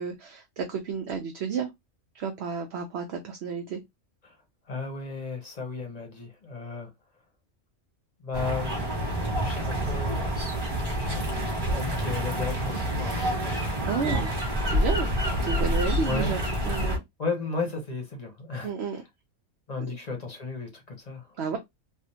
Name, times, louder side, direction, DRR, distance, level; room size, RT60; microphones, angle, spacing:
voice 1, 0.0-1.7 2.1-3.8 13.9-14.3 14.7-15.1 15.4-17.0 18.6-19.0 19.8-20.0 21.4-21.6, right 6 dB, 65° right, 0.7 m, -31 dB
voice 2, 4.7-6.9 8.2-8.7 9.4-10.2 11.0-11.5 11.7-13.6 14.0-14.2 15.6-15.7 16.0-16.4 17.2-19.0 19.7-21.6, left 4 dB, 35° left, 0.8 m, -35 dB
sound 1, 8.3-17.0, equal, 20° right, 1.3 m, -28 dB
3.3 x 2.1 x 2.7 m
omnidirectional pair, 1.3 m